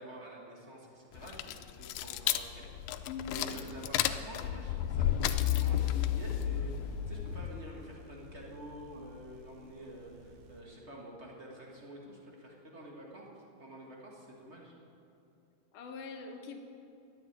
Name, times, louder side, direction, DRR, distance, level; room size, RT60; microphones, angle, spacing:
voice 1, 0.0-14.7, right 1 dB, 50° right, -2 dB, 0.8 m, -48 dB
sound 1, 1.1-7.7, left 11 dB, 90° left, 2.3 m, -32 dB
sound 2, 1.9-10.6, left 2 dB, 70° right, 2.6 m, -55 dB
voice 2, 3.1-3.5 15.7-16.6, left 6 dB, 75° left, 4 dB, 2.4 m, -42 dB
12.0 x 8.0 x 9.9 m, 2.7 s
omnidirectional pair, 3.9 m